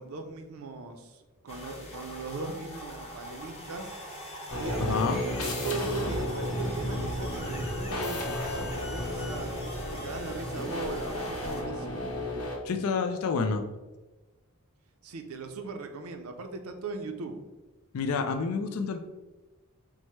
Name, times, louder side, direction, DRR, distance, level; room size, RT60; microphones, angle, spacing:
voice 1, 0.0-4.0 4.5-12.1 15.0-17.5, right 3 dB, 70° right, 6 dB, 0.5 m, -39 dB
sound 1, 1.5-11.6, equal, 30° left, 0.9 m, -42 dB
sound 2, 4.5-12.6, left 1 dB, 90° left, 1.0 m, -33 dB
voice 2, 4.8-5.2 12.6-13.6 17.9-19.0, left 4 dB, 70° left, 6 dB, 0.4 m, -28 dB
4.6 x 2.1 x 4.4 m, 1.1 s
head